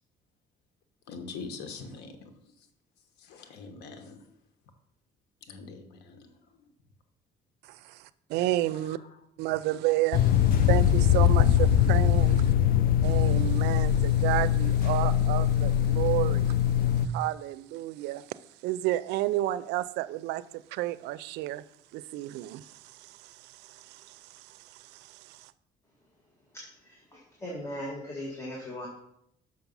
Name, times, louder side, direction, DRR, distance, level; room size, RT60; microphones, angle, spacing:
voice 1, 1.1-2.1 3.3-4.2 5.5-6.3, left 4 dB, 75° left, 6 dB, 1.3 m, -42 dB
voice 2, 7.6-9.0 9.4-12.5 13.0-16.6 17.0-18.2 18.6-21.6 21.9-25.5, right 16 dB, 90° right, 17 dB, 0.4 m, -31 dB
sound 1, 10.1-17.1, left 10 dB, 60° left, 0.5 m, -22 dB
voice 3, 26.8-28.9, left 1 dB, 15° left, -3 dB, 1.7 m, -38 dB
6.4 x 5.8 x 5.4 m, 0.73 s
cardioid pair, 110°, 17 cm